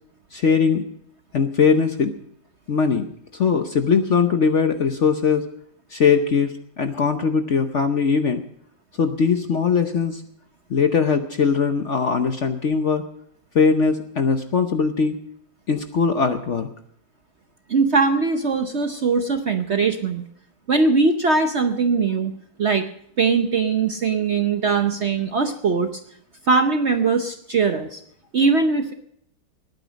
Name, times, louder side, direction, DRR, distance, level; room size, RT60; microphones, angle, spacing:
voice 1, 0.3-0.9 1.3-2.1 2.7-5.4 5.9-8.4 9.0-10.2 10.7-13.0 13.5-15.2 15.7-16.7, left 5 dB, 50° left, 7 dB, 0.9 m, -20 dB
voice 2, 17.7-20.2 20.7-22.3 22.6-22.9 23.2-25.9 26.5-28.0 28.3-28.9, right 4 dB, 50° right, 7 dB, 0.8 m, -20 dB
20.0 x 9.2 x 5.1 m, 0.69 s
omnidirectional pair, 2.0 m